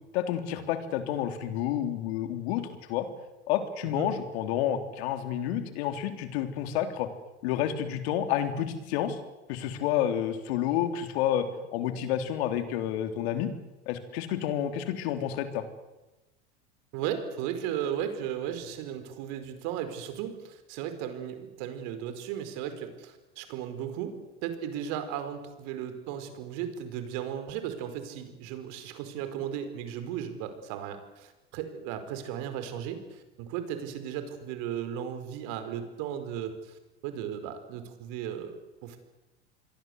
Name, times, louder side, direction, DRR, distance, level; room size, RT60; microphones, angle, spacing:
voice 1, 0.1-3.1 3.5-7.1 7.4-9.2 9.5-11.5 11.7-13.5 13.8-15.6, left 10 dB, 70° left, 8 dB, 3.5 m, -29 dB
voice 2, 16.9-24.1 24.4-39.0, right 9 dB, 60° right, 9 dB, 5.0 m, -36 dB
27.0 x 22.5 x 8.1 m, 1.0 s
hypercardioid pair, 95°, 33 cm